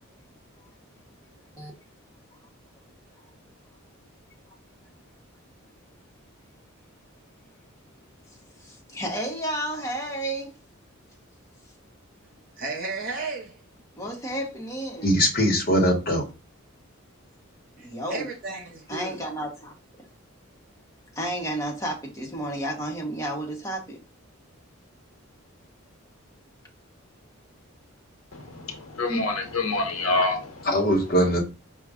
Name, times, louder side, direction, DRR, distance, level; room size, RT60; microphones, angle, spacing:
voice 1, 8.6-10.5 13.9-15.2 17.8-18.3 18.9-20.1 21.1-24.0, right 1 dB, 15° left, 1.2 m, -32 dB
voice 2, 12.6-13.5 17.8-19.3, right 3 dB, 40° right, 1.5 m, -34 dB
voice 3, 15.0-16.2 30.7-31.4, equal, 45° left, 1.1 m, -21 dB
voice 4, 28.3-30.7, left 2 dB, 80° left, 1.0 m, -27 dB
5.1 x 2.3 x 3.5 m
head